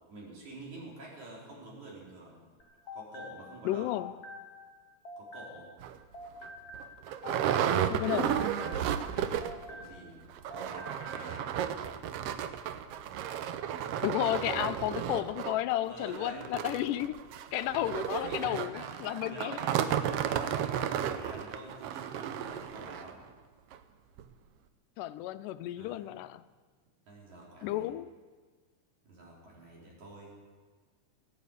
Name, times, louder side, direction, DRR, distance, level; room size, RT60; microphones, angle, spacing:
voice 1, 0.1-2.4 2.9-3.9 5.2-5.7 7.9-8.2 9.7-10.2 10.5-11.6 15.9-16.5 17.5-19.7 20.0-23.2 25.8-26.1 27.1-27.9 29.1-30.3, right 1 dB, 65° right, -4 dB, 5.0 m, -47 dB
sound 1, 2.6-5.9 6.1-10.2 10.5-11.3, left 2 dB, 65° left, 0.9 m, -47 dB
voice 2, 3.6-4.1 7.7-8.4 14.0-17.2 17.5-19.6 25.0-26.4 27.6-28.1, left 14 dB, 85° left, 13 dB, 2.1 m, -32 dB
sound 2, 5.8-5.9 6.4-6.5 6.7-9.7 10.0-10.1 10.3-23.1 23.7-23.8 24.2-24.3, right 9 dB, 90° right, 1.3 m, -33 dB
17.0 x 9.3 x 8.3 m, 1.5 s
omnidirectional pair, 3.7 m